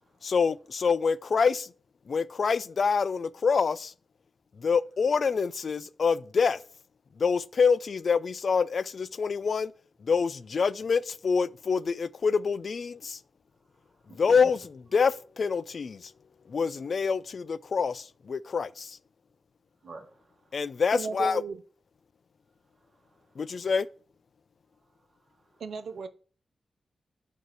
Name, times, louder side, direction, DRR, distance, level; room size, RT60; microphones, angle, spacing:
voice 1, 0.2-1.7 2.1-3.9 4.6-6.6 7.2-9.7 10.0-13.2 14.1-16.1 16.5-19.0 20.5-21.4 23.4-23.9, left 5 dB, 55° left, 0.3 m, -26 dB
voice 2, 14.1-14.5 19.8-20.6 22.9-23.3 25.2-25.6, right 3 dB, 45° right, 1.6 m, -50 dB
voice 3, 20.9-21.6 25.6-26.1, right 5 dB, 90° right, 0.4 m, -35 dB
7.8 x 2.8 x 4.7 m
wide cardioid pair, 140°, 0 cm